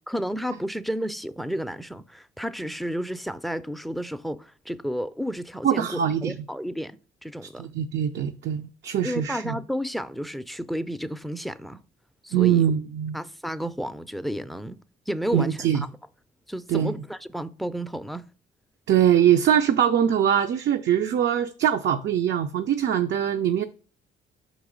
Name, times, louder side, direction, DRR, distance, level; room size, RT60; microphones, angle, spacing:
voice 1, 0.1-7.7 9.0-11.8 12.2-12.6 13.1-15.9 16.5-18.3, equal, ahead, 0.4 m, -32 dB
voice 2, 5.6-6.4 7.6-9.6 12.3-13.2 15.3-15.8 16.7-16.9 18.9-23.6, right 9 dB, 65° right, 0.5 m, -22 dB
5.3 x 4.0 x 5.0 m
cardioid pair, 90°, 20 cm